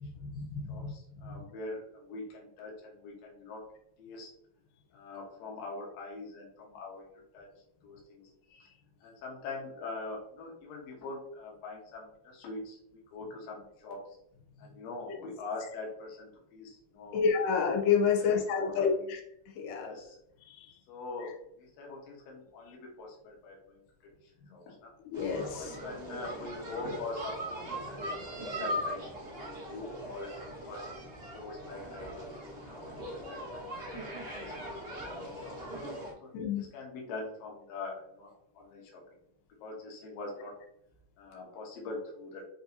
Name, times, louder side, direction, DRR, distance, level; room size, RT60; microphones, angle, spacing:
voice 1, 0.0-0.9 1.2-1.4 17.1-19.2 19.6-19.9 20.5-20.7 25.1-25.8 36.3-36.6, left 6 dB, 85° left, 1 dB, 2.3 m, -29 dB
voice 2, 0.7-3.6 4.0-4.3 4.9-7.0 7.3-7.5 7.8-8.3 9.0-14.0 14.6-17.2 18.2-18.3 18.6-19.1 19.8-20.2 20.9-23.8 24.5-24.9 25.6-29.1 29.4-31.0 31.3-32.2 32.6-32.8 33.0-33.4 33.8-34.0 34.4-35.6 36.2-36.3 36.6-39.0 39.6-40.5 41.2-42.4, left 3 dB, 65° left, -1 dB, 2.1 m, -43 dB
sound 1, 25.1-36.1, equal, 45° right, 0.7 m, -40 dB
6.8 x 2.7 x 2.7 m, 0.73 s
omnidirectional pair, 3.7 m